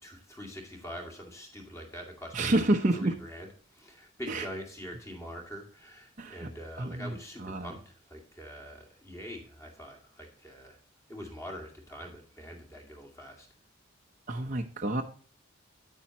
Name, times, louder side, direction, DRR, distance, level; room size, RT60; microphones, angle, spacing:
voice 1, 0.0-2.7 2.9-10.8 11.1-13.5, equal, 15° left, 2 dB, 2.1 m, -44 dB
voice 2, 2.3-3.2 4.3-4.4 6.2-6.5 6.8-7.7 14.3-15.0, right 1 dB, 35° right, 2 dB, 0.7 m, -29 dB
9.4 x 8.7 x 2.9 m, 0.43 s
head